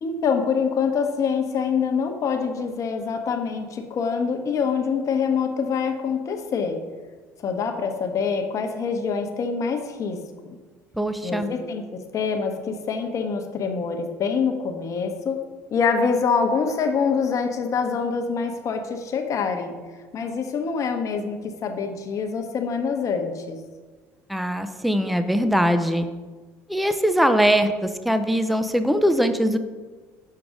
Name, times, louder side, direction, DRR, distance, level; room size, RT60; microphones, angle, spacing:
voice 1, 0.0-6.8 7.4-10.2 11.2-15.4 15.7-19.8 20.1-23.6, left 5 dB, 50° left, 5 dB, 0.9 m, -25 dB
voice 2, 11.0-11.5 24.3-26.1 26.7-29.6, equal, ahead, 9 dB, 0.5 m, -21 dB
6.6 x 5.8 x 3.7 m, 1.4 s
hypercardioid pair, 60°, 7 cm